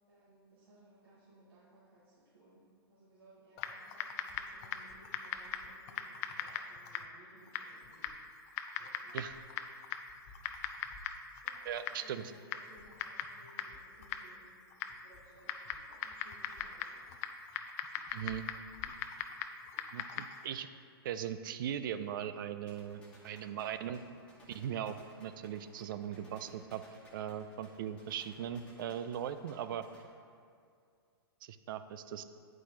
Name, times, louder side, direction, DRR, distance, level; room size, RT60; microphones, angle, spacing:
voice 1, 0.1-8.1 8.8-9.4 9.7-9.8 10.2-10.4 11.4-14.6 14.9-17.1, right 2 dB, 75° right, -9 dB, 1.4 m, -62 dB
Typing, 3.6-20.5, left 8 dB, 40° left, 0.4 m, -42 dB
voice 2, 11.7-12.3 18.1-18.5 19.9-20.7 21.0-24.0 24.5-26.8 27.1-29.9 31.4-32.2, right 9 dB, 55° right, 10 dB, 0.4 m, -39 dB
sound 1, 22.7-30.0, left 1 dB, 10° left, 1.3 m, -59 dB
8.4 x 4.6 x 2.8 m, 2.3 s
hypercardioid pair, 115°, 13 cm